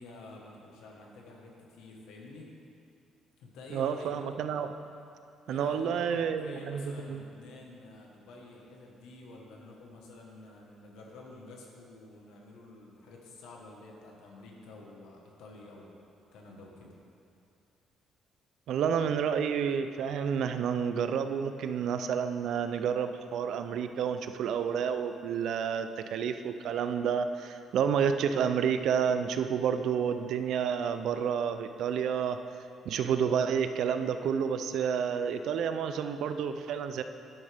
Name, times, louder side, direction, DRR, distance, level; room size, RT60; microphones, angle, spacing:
voice 1, 0.0-2.5 3.4-4.1 5.5-15.9 16.3-16.9, left 2 dB, 90° left, -1 dB, 1.4 m, -49 dB
voice 2, 3.7-4.7 5.5-7.2 18.7-32.4 32.9-37.0, right 7 dB, 70° right, 9 dB, 0.5 m, -30 dB
11.0 x 7.9 x 3.5 m, 2.5 s
cardioid pair, 120°, 0 cm